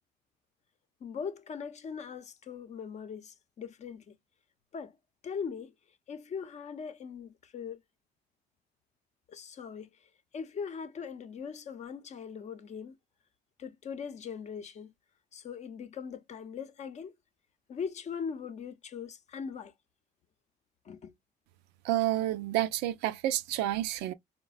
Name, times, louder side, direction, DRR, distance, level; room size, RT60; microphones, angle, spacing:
voice 1, 1.0-4.2 4.7-5.0 5.2-5.7 6.1-7.8 9.3-13.0 13.6-14.9 15.3-17.1 17.7-19.7 20.8-21.1, left 6 dB, 40° left, 0.6 m, -40 dB
voice 2, 21.8-24.1, right 13 dB, 90° right, 0.4 m, -29 dB
4.0 x 2.1 x 2.2 m
cardioid pair, 110°, 17 cm